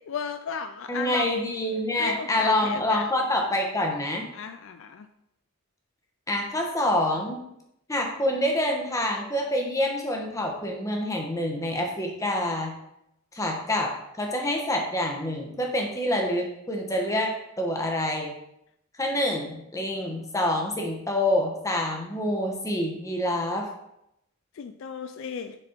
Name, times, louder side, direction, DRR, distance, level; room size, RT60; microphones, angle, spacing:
voice 1, 0.1-1.3 2.0-3.1 4.3-5.1 24.5-25.6, left 6 dB, 60° left, 9 dB, 0.3 m, -35 dB
voice 2, 0.9-4.3 6.3-7.4 7.9-12.7 13.3-18.3 19.0-23.7, left 1 dB, 15° left, 1 dB, 1.0 m, -27 dB
6.5 x 4.2 x 4.4 m, 0.81 s
head